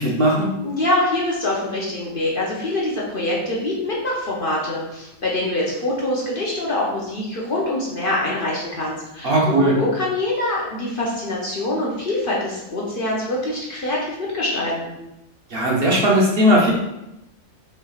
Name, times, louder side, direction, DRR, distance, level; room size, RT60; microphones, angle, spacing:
voice 1, 0.0-0.5 9.2-9.7 15.5-16.7, equal, 50° right, -4 dB, 0.9 m, -17 dB
voice 2, 0.6-15.0, left 1 dB, 45° left, -4 dB, 0.9 m, -24 dB
5.6 x 3.2 x 2.4 m, 0.89 s
omnidirectional pair, 1.4 m